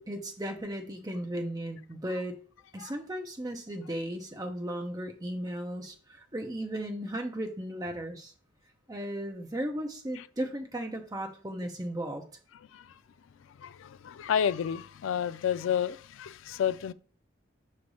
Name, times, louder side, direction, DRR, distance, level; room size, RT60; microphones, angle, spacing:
voice 1, 0.1-2.4 2.7-8.3 8.9-12.2, right 1 dB, 20° right, 0.8 m, -36 dB
voice 2, 13.4-16.9, left 8 dB, 85° left, 0.3 m, -31 dB
5.9 x 3.3 x 5.3 m
head